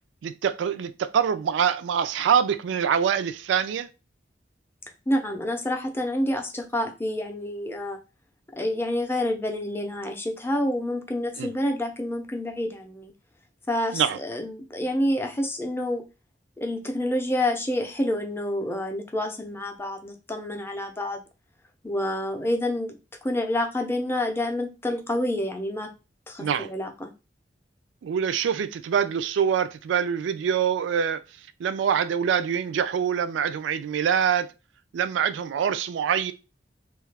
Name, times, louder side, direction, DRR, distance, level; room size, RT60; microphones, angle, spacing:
voice 1, 0.2-3.9 11.4-11.5 13.9-14.2 26.4-26.7 28.0-31.2 31.6-34.5 34.9-36.3, right 7 dB, 90° right, 0.3 m, -25 dB
voice 2, 5.1-8.0 8.5-13.1 13.7-16.0 16.6-21.2 21.8-22.9 23.2-25.9 26.3-27.1, left 1 dB, 15° left, 0.5 m, -28 dB
2.6 x 2.4 x 3.2 m
head